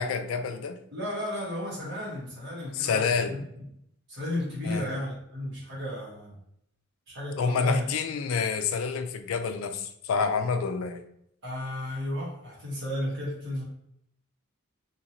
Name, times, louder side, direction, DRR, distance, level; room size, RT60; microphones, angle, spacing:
voice 1, 0.0-0.8 2.7-3.3 4.6-4.9 7.4-11.0, left 5 dB, 70° left, 8 dB, 0.4 m, -28 dB
voice 2, 0.9-3.7 4.1-6.4 7.1-7.8 11.4-13.6, left 1 dB, 55° right, -6 dB, 1.4 m, -33 dB
2.9 x 2.8 x 2.6 m, 0.74 s
head